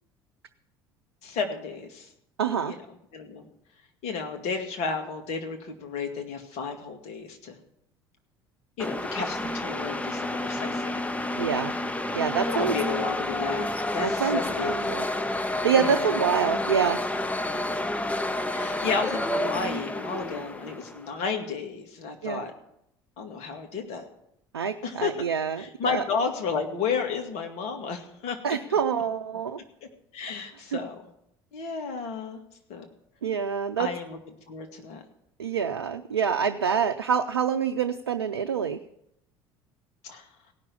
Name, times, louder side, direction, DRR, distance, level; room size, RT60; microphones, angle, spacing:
voice 1, 1.2-2.1 2.7-2.8 3.1-3.5 4.0-7.6 8.8-11.0 12.4-14.9 15.8-16.2 18.5-22.5 23.2-24.1 24.8-25.1 25.6-28.6 30.1-31.0 31.5-32.4 32.7-32.9 33.8-34.2 34.5-35.0 40.0-40.2, left 5 dB, 55° left, 5 dB, 2.1 m, -32 dB
voice 2, 2.4-2.8 11.4-11.7 12.1-12.7 14.0-15.1 15.6-17.0 22.2-22.4 24.5-26.0 28.4-29.6 33.2-33.9 35.4-38.8, right 7 dB, 90° right, 6 dB, 0.5 m, -26 dB
sound 1, 8.8-21.1, left 1 dB, 10° left, 0.9 m, -29 dB
17.0 x 6.1 x 8.4 m, 0.78 s
hypercardioid pair, 65°, 13 cm